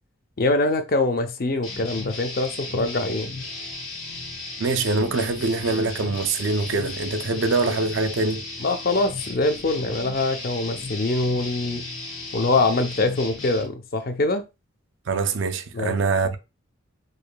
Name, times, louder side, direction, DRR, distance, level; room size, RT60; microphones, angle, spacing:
voice 1, 0.4-3.3 8.6-11.9 12.3-14.4 15.7-16.0, left 2 dB, 45° left, 0.5 m, -24 dB
sound 1, 1.6-13.7, left 2 dB, 80° left, 1.5 m, -35 dB
voice 2, 4.6-8.4 15.1-16.4, right 3 dB, 60° right, 0.5 m, -24 dB
4.9 x 2.6 x 2.2 m
head